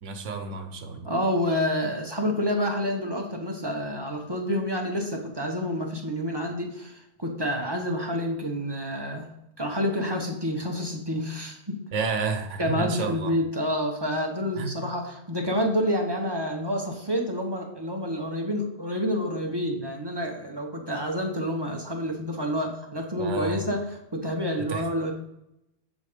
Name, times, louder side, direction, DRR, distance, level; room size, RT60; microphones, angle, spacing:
voice 1, 0.0-1.1 11.9-13.3 14.6-14.8 23.2-23.6 24.7-24.8, right 4 dB, 90° right, 6 dB, 1.1 m, -30 dB
voice 2, 1.0-9.3 9.6-11.8 12.6-23.9 24.1-25.1, equal, 25° right, 1 dB, 0.9 m, -28 dB
7.3 x 4.1 x 5.0 m, 0.83 s
omnidirectional pair, 1.2 m